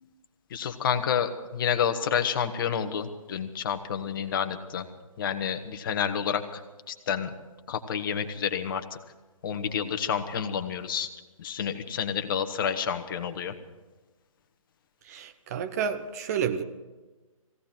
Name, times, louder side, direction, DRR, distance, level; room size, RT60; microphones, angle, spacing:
voice 1, 0.5-4.9 5.2-6.6 6.9-7.3 7.7-8.8 9.4-11.1 11.4-13.5, left 8 dB, 35° left, 7 dB, 1.5 m, -29 dB
voice 2, 15.1-16.6, right 7 dB, 25° right, 8 dB, 1.0 m, -30 dB
18.5 x 17.0 x 4.5 m, 1.2 s
hypercardioid pair, 155°, 18 cm